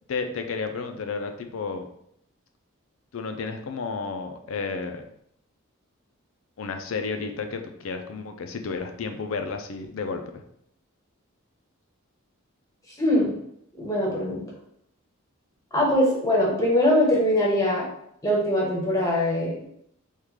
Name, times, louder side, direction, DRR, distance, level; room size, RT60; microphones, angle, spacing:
voice 1, 0.1-1.9 3.1-5.0 6.6-10.4, left 4 dB, 65° left, 6 dB, 0.4 m, -32 dB
voice 2, 13.0-13.3 13.8-14.4 15.7-17.8 18.2-19.6, left 1 dB, 15° left, -3 dB, 0.7 m, -22 dB
3.5 x 2.4 x 3.1 m, 0.72 s
head